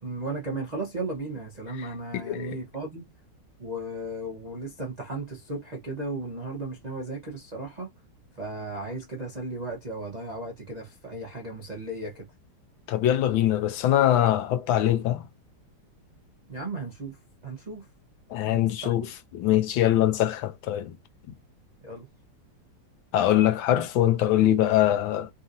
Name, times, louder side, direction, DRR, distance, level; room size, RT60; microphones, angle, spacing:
voice 1, 0.0-3.0 3.6-7.9 8.4-12.2 16.5-17.2 17.4-17.9 18.4-18.9 21.8-22.1, right 2 dB, 90° right, 0.3 m, -35 dB
voice 2, 2.1-2.5 12.9-15.3 18.3-19.1 19.3-20.9 23.1-25.3, left 12 dB, 70° left, 1.3 m, -23 dB
4.0 x 2.6 x 2.6 m
omnidirectional pair, 2.3 m